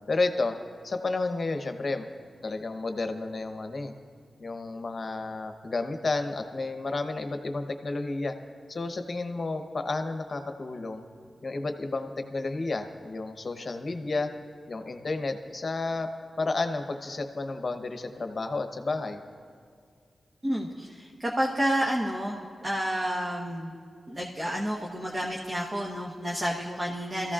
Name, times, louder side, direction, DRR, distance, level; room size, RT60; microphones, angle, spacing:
voice 1, 0.1-0.6 0.8-2.1 2.4-3.9 4.4-8.3 8.7-11.0 11.4-14.3 14.7-16.1 16.4-19.2, left 3 dB, 45° left, 6 dB, 1.0 m, -31 dB
voice 2, 20.4-23.8 24.1-27.3, equal, 30° right, -2 dB, 1.2 m, -30 dB
25.0 x 14.5 x 2.5 m, 2.2 s
wide cardioid pair, 105°, 0 cm